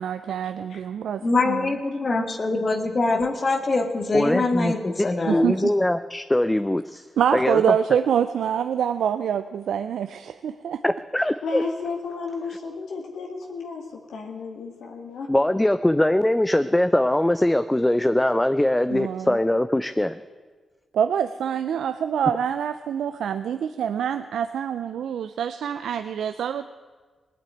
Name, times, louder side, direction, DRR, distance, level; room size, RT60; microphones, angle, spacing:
voice 1, 0.0-1.7 5.3-5.6 7.2-10.8 18.9-19.4 20.9-26.7, right 8 dB, 85° right, 10 dB, 0.4 m, -25 dB
voice 2, 1.2-5.5, left 3 dB, 45° left, 6 dB, 2.0 m, -24 dB
voice 3, 4.1-4.7 5.0-7.1 7.3-7.6 10.8-11.6 15.3-20.2, left 1 dB, 15° left, 11 dB, 0.6 m, -22 dB
voice 4, 11.2-15.3, left 4 dB, 85° left, 1 dB, 2.0 m, -33 dB
18.0 x 8.7 x 9.2 m, 1.4 s
cardioid pair, 55°, 0 cm